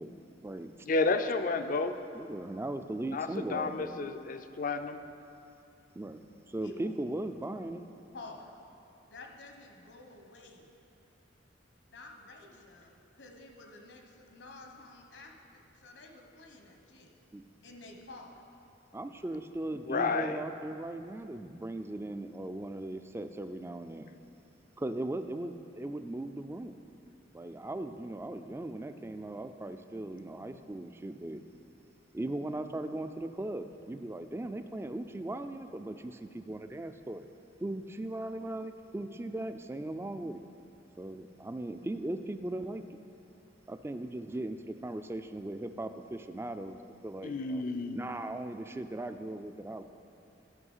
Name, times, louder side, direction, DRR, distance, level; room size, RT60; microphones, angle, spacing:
voice 1, 0.0-0.7 2.1-4.1 6.0-7.9 17.3-17.4 18.9-24.1 24.8-26.8 27.3-31.4 32.1-37.3 37.6-40.4 41.0-43.0 43.7-47.6 47.9-49.8, right 1 dB, 15° right, 9 dB, 0.3 m, -38 dB
voice 2, 0.9-2.0 3.1-5.0 19.9-20.4 47.2-48.1, left 3 dB, 50° left, 9 dB, 0.4 m, -31 dB
voice 3, 6.6-6.9 8.1-8.5 9.1-10.8 11.9-17.1 17.6-18.4, left 2 dB, 75° left, 2 dB, 1.1 m, -50 dB
12.5 x 5.7 x 5.5 m, 2.7 s
head